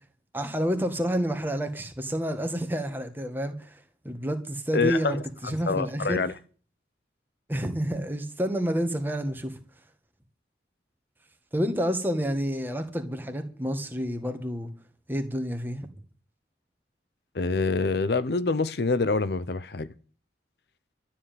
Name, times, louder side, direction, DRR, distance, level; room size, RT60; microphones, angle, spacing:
voice 1, 0.3-5.2 5.4-6.3 7.5-9.6 11.5-14.7 15.1-15.9, equal, 10° right, 1.7 m, -29 dB
voice 2, 4.7-6.3 17.3-19.9, left 4 dB, 65° left, 0.7 m, -26 dB
13.0 x 7.3 x 9.3 m
head